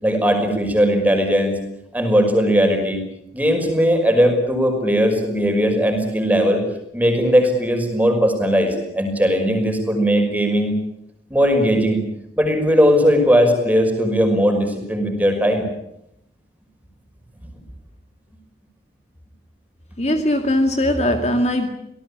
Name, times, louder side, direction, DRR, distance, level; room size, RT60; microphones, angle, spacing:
voice 1, 0.0-1.5 1.9-3.0 3.3-6.6 6.9-10.8 11.3-12.0 12.4-15.7 20.1-20.2, equal, 10° right, 4 dB, 5.6 m, -18 dB
voice 2, 20.0-21.7, left 1 dB, 35° left, 5 dB, 2.2 m, -20 dB
26.5 x 18.5 x 8.7 m, 0.79 s
head